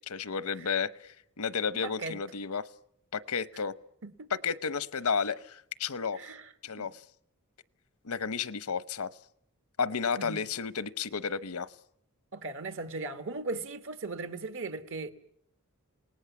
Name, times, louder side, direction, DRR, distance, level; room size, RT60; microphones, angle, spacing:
voice 1, 0.1-2.7 3.1-3.7 4.4-6.2 6.6-7.0 8.0-9.1 9.8-11.7, left 6 dB, 85° left, 0.9 m, -32 dB
voice 2, 1.7-2.2 4.0-4.3 6.1-6.5 6.8-6.9 10.2-10.4 12.3-15.1, right 3 dB, 60° right, 1.5 m, -38 dB
27.5 x 18.5 x 7.1 m
head